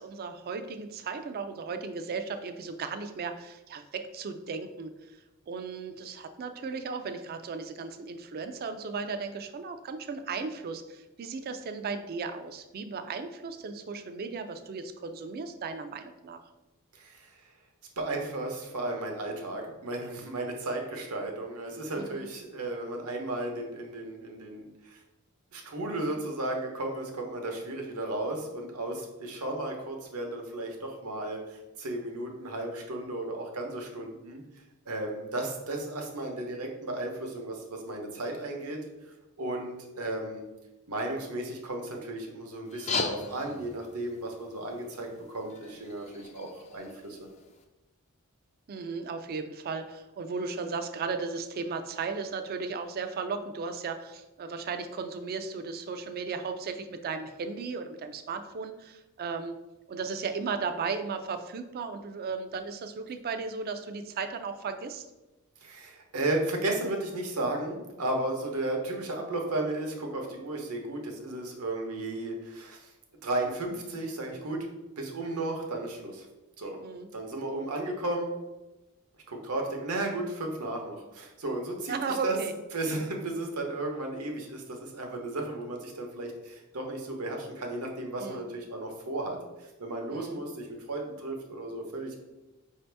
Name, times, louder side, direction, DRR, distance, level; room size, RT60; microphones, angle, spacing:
voice 1, 0.0-4.9 5.5-16.4 21.9-22.3 48.7-59.5 59.9-65.0 76.8-77.1 81.9-82.5 88.2-88.5 90.1-90.4, right 4 dB, 45° right, 9 dB, 0.4 m, -36 dB
voice 2, 16.9-17.3 18.0-25.0 25.5-34.4 34.9-38.8 39.4-40.5 40.9-47.3 65.6-72.9 73.2-74.7 75.0-76.3 76.6-76.8 77.1-78.3 79.3-82.4 82.7-92.2, right 2 dB, 80° right, 2 dB, 0.9 m, -34 dB
sound 1, 42.7-47.6, left 4 dB, 30° left, 0.4 m, -38 dB
5.1 x 2.8 x 3.3 m, 1.0 s
head